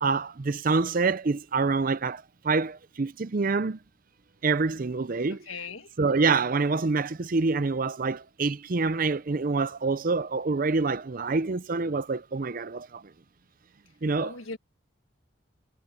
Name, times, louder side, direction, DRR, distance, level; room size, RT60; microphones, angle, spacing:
voice 1, 0.0-3.8 4.4-5.5 6.0-13.0 14.0-14.4, right 4 dB, 45° right, 0.5 m, -26 dB
voice 2, 5.5-5.9 14.2-14.6, left 4 dB, 85° left, 1.6 m, -38 dB
head